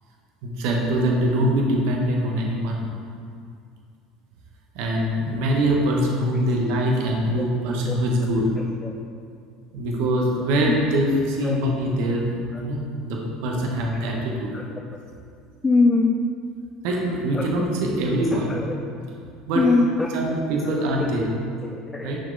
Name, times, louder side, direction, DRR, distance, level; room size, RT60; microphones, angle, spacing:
voice 1, 0.4-2.9 4.7-8.4 9.7-14.5 16.8-18.6 19.5-19.8 20.1-21.3 22.0-22.2, right 1 dB, 75° right, -1 dB, 1.0 m, -23 dB
voice 2, 8.6-8.9 10.7-10.8 11.4-11.6 12.0-12.1 12.5-12.6 14.5-14.6 15.6-16.2 17.3-17.7 18.3-18.8 19.5-20.1 20.6-21.1 21.6-22.2, left 3 dB, 20° left, 1 dB, 0.4 m, -23 dB
6.0 x 4.4 x 3.9 m, 2.3 s
supercardioid pair, 95°, 0 cm